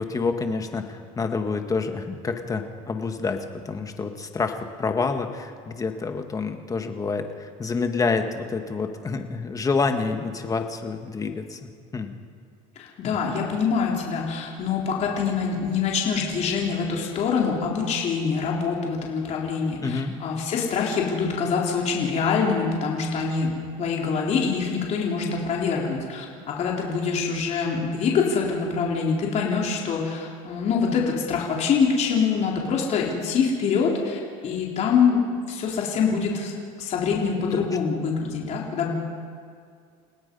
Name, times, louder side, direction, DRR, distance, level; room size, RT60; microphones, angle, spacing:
voice 1, 0.0-12.1 13.0-13.2 19.8-20.2 37.5-37.6, left 4 dB, 20° left, 6 dB, 1.7 m, -28 dB
voice 2, 12.8-36.5 36.8-38.9, left 5 dB, 40° left, -2 dB, 4.0 m, -25 dB
30.0 x 17.5 x 5.5 m, 2.2 s
supercardioid pair, 125°, 17 cm